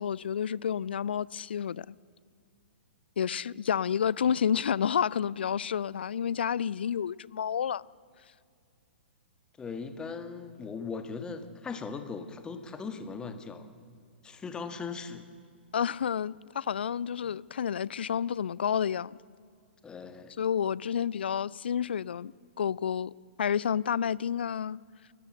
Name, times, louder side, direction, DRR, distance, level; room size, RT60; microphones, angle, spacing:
voice 1, 0.0-2.0 3.2-7.8 15.7-19.2 20.4-23.1 23.4-24.8, left 8 dB, 60° left, 0.4 m, -30 dB
voice 2, 9.6-13.7 14.2-15.2 19.8-20.3, left 5 dB, 15° left, 1.6 m, -39 dB
29.0 x 14.5 x 7.9 m
figure-of-eight pair, 110°, 6 cm